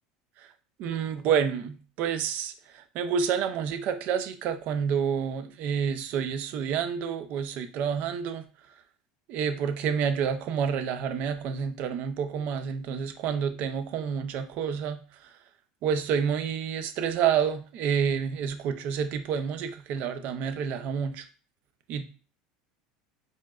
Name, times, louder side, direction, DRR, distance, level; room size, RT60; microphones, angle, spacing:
voice 1, 0.8-8.4 9.3-15.0 15.8-21.2 21.9-22.0, right 7 dB, 55° right, 9 dB, 0.6 m, -29 dB
4.4 x 3.0 x 2.4 m, 0.37 s
hypercardioid pair, 95°, 3 cm